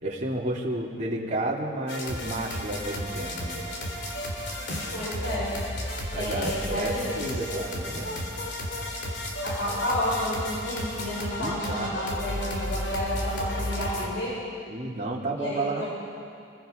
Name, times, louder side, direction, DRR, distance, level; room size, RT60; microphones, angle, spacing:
voice 1, 0.0-3.6 6.1-8.2 11.4-11.9 14.7-15.9, right 2 dB, 40° right, -3 dB, 3.0 m, -31 dB
sound 1, 1.9-14.1, left 1 dB, 65° left, 3.5 m, -33 dB
voice 2, 4.9-5.5 6.1-7.3 9.4-14.3 15.4-15.9, equal, 90° left, -7 dB, 7.6 m, -31 dB
28.5 x 21.5 x 5.3 m, 2.3 s
head